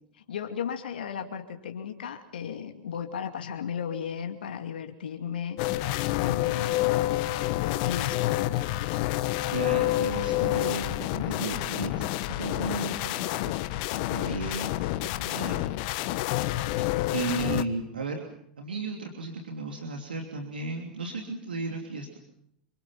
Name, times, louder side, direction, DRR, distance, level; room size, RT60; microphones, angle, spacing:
voice 1, 0.1-5.9 6.2-7.0 7.9-8.4, left 7 dB, 75° left, 5 dB, 2.6 m, -35 dB
sound 1, 5.6-17.6, left 16 dB, 55° left, 1.3 m, -28 dB
voice 2, 9.5-13.5 14.0-15.6 16.7-18.3 18.6-22.2, right 3 dB, 85° right, 3 dB, 3.1 m, -35 dB
28.5 x 25.0 x 5.8 m, 0.76 s
hypercardioid pair, 90°, 5 cm